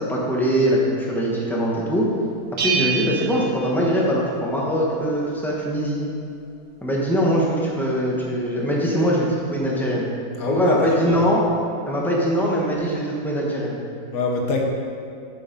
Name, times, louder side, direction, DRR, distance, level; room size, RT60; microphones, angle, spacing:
voice 1, 0.0-2.1 2.6-6.0 6.8-10.1 10.5-11.4 11.9-13.8, equal, ahead, -4 dB, 1.2 m, -22 dB
Bell, 2.6-4.4, right 5 dB, 90° right, 1.7 m, -27 dB
voice 2, 10.4-11.2 14.1-14.6, left 3 dB, 70° left, 1 dB, 1.5 m, -24 dB
7.1 x 6.4 x 5.4 m, 2.6 s
omnidirectional pair, 1.6 m